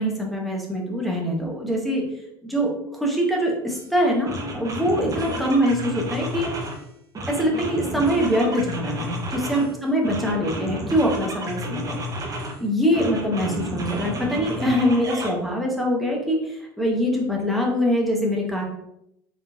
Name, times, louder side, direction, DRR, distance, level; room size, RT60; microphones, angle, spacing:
voice 1, 0.0-2.0 2.4-6.5 7.3-12.0 12.6-18.6, equal, ahead, -1 dB, 1.3 m, -23 dB
sound 1, 3.7-3.9 4.3-6.8 7.1-9.7 10.0-12.6 12.9-15.3, equal, 30° right, 1.1 m, -31 dB
4.5 x 3.7 x 2.6 m, 0.80 s
hypercardioid pair, 70°, 12 cm